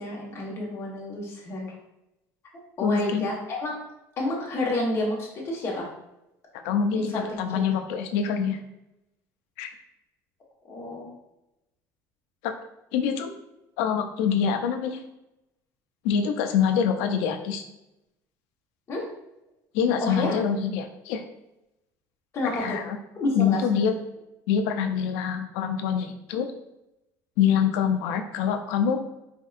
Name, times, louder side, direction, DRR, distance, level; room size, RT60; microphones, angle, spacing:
voice 1, 0.0-1.7 2.8-3.7 4.2-5.9 6.9-7.6 10.7-11.1 18.9-19.1 20.0-20.4 22.3-22.8 23.1-24.0, left 1 dB, 35° left, -3 dB, 1.1 m, -30 dB
voice 2, 2.8-3.3 6.6-8.6 9.6-9.7 12.4-12.5 12.9-13.3 13.8-15.0 16.0-17.6 19.7-21.2 22.5-23.0 23.3-23.9 24.5-26.5 27.4-29.0, left 7 dB, 90° left, 6 dB, 0.4 m, -25 dB
4.3 x 2.7 x 2.4 m, 0.90 s
cardioid pair, 135°, 8 cm